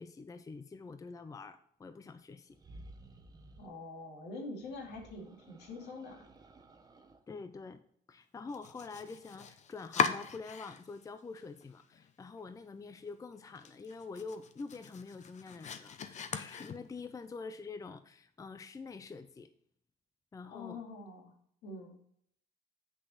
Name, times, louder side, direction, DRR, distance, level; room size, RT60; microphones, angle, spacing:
voice 1, 0.0-2.6 7.3-7.8 8.1-19.5 20.3-20.8, left 4 dB, 20° left, 10 dB, 0.6 m, -46 dB
sound 1, 2.5-3.7 4.6-7.2, right 2 dB, 20° right, 1.0 m, -55 dB
voice 2, 3.6-6.2 20.4-21.3 21.6-22.0, left 2 dB, 80° left, 1 dB, 2.6 m, -45 dB
Domestic sounds home sounds, 8.5-11.0 11.4-12.1 12.5-12.6 13.0-13.1 13.5-17.2, left 6 dB, 45° left, 0.8 m, -38 dB
8.0 x 6.2 x 4.0 m, 0.65 s
cardioid pair, 110°, 17 cm